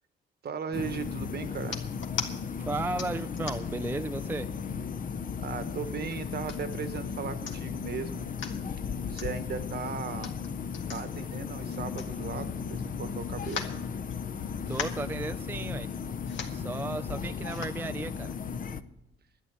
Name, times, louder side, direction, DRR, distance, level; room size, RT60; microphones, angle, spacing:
voice 1, 0.4-1.8 5.4-8.2 9.0-10.3 10.9-13.7, right 6 dB, 55° right, 10 dB, 1.3 m, -37 dB
sound 1, 0.7-18.8, left 6 dB, 45° left, 0.7 m, -36 dB
sound 2, 1.6-2.3 3.0-3.8 4.4-4.5 4.8-5.5 6.1-6.8 7.2-7.3 7.5-7.8 8.2-8.6 9.1-9.3 10.1-12.6 12.9-13.0 13.4-14.4 14.6-15.1 15.9-16.0 16.2-16.6 17.4-17.8 18.4-18.5, left 6 dB, 70° left, 1.9 m, -39 dB
voice 2, 2.6-4.6 14.7-15.9 16.5-18.4, right 3 dB, 10° right, 9 dB, 0.4 m, -34 dB
11.5 x 9.7 x 8.3 m, 0.88 s
cardioid pair, 90°, 20 cm